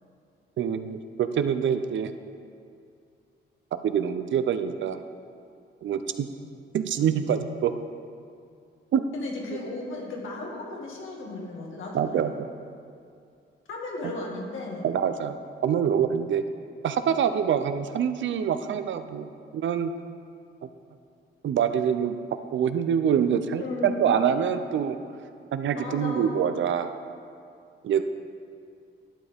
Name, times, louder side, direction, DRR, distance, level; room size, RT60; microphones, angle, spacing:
voice 1, 0.6-2.1 3.7-5.0 5.8-6.3 6.7-7.7 8.9-9.0 11.9-12.5 14.8-15.4 15.6-16.4 16.8-19.9 21.4-22.2 22.5-25.0 25.5-26.9 27.8-28.0, right 8 dB, 65° right, 9 dB, 0.6 m, -25 dB
voice 2, 9.1-12.3 13.7-14.9 23.6-23.9 25.7-26.3, left 2 dB, 75° left, -2 dB, 2.1 m, -35 dB
12.0 x 9.5 x 3.5 m, 2.4 s
cardioid pair, 130°, 21 cm